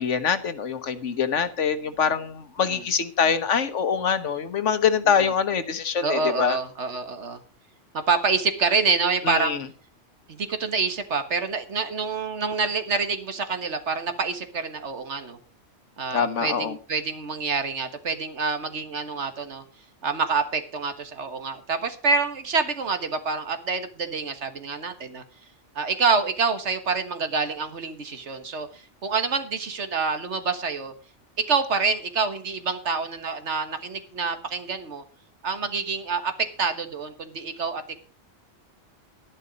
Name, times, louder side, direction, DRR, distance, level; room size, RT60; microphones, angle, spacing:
voice 1, 0.0-6.6 9.3-9.6 16.1-16.7, left 7 dB, 75° left, 12 dB, 1.5 m, -24 dB
voice 2, 6.0-7.4 7.9-9.6 10.3-15.4 16.0-19.6 20.0-25.2 25.7-30.9 31.4-35.0 35.4-37.9, right 4 dB, 70° right, 9 dB, 1.7 m, -27 dB
11.5 x 11.0 x 5.1 m, 0.37 s
omnidirectional pair, 1.2 m